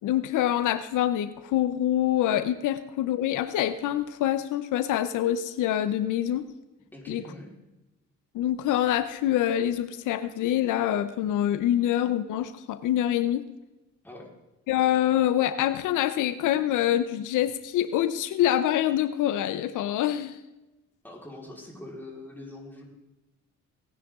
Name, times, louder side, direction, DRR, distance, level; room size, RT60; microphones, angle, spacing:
voice 1, 0.0-6.5 7.1-7.2 8.3-13.4 14.7-20.4, left 12 dB, 85° left, 12 dB, 0.8 m, -25 dB
voice 2, 6.9-7.5 14.0-14.3 21.0-22.8, left 1 dB, 5° left, -2 dB, 4.4 m, -43 dB
18.5 x 10.0 x 3.7 m, 1.0 s
cardioid pair, 90°, 30 cm